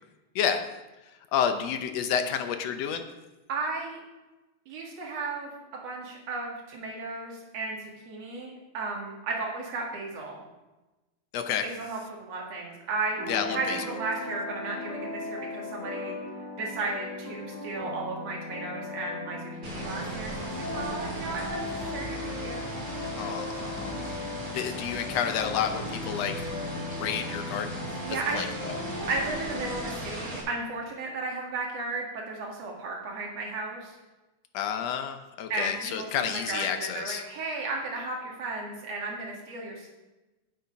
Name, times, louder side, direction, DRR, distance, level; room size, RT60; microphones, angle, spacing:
voice 1, 1.0-3.1 11.3-11.7 13.3-13.8 23.2-24.0 24.5-26.5 26.9-27.9 28.3-28.8 34.5-37.2, left 8 dB, 75° left, 7 dB, 1.7 m, -30 dB
voice 2, 3.5-4.0 4.7-5.5 5.8-10.4 11.6-16.1 16.6-22.7 28.0-28.4 29.1-34.0 35.5-39.9, right 3 dB, 60° right, -1 dB, 2.8 m, -34 dB
sound 1, 13.2-30.4, left 2 dB, 20° left, 0.5 m, -37 dB
sound 2, 19.6-30.4, right 1 dB, 20° right, 2.8 m, -38 dB
8.5 x 8.2 x 5.2 m, 1.1 s
omnidirectional pair, 3.4 m